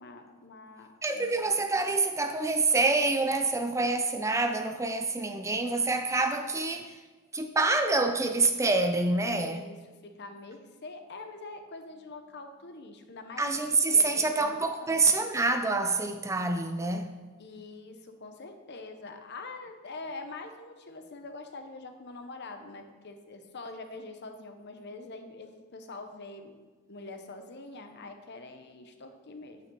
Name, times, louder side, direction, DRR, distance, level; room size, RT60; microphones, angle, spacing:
voice 1, 0.0-1.6 9.4-9.8 10.0-15.1 17.4-26.5 26.9-29.6, left 3 dB, 55° left, 0.9 m, -44 dB
voice 2, 1.0-7.0 7.3-9.7 13.4-17.1, right 3 dB, 15° right, 0.5 m, -26 dB
8.9 x 8.9 x 3.9 m
head